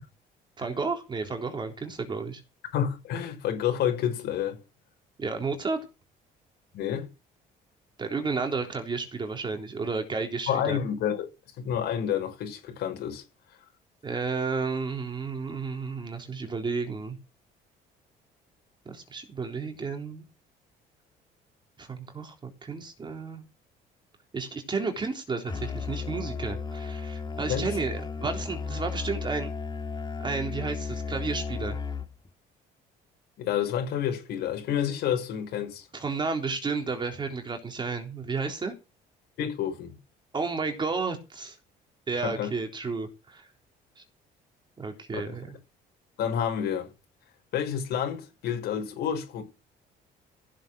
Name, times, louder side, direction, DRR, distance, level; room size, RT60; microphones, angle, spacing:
voice 1, 0.6-2.4 5.2-5.8 8.0-10.8 14.0-17.2 18.9-20.2 21.8-23.5 24.3-29.5 30.2-31.8 35.9-38.7 40.3-41.6 42.1-43.5 44.0-44.1 44.8-45.6, right 4 dB, 25° right, 3.7 m, -32 dB
voice 2, 2.7-4.6 6.7-7.1 10.5-11.3 11.6-13.2 27.4-27.7 33.4-35.9 39.4-40.0 42.2-42.5 45.1-45.4 46.2-46.9 47.5-49.4, left 9 dB, 75° left, 6.1 m, -29 dB
Musical instrument, 25.5-32.3, left 5 dB, 25° left, 2.1 m, -34 dB
15.5 x 7.7 x 6.4 m
cardioid pair, 110°, 17 cm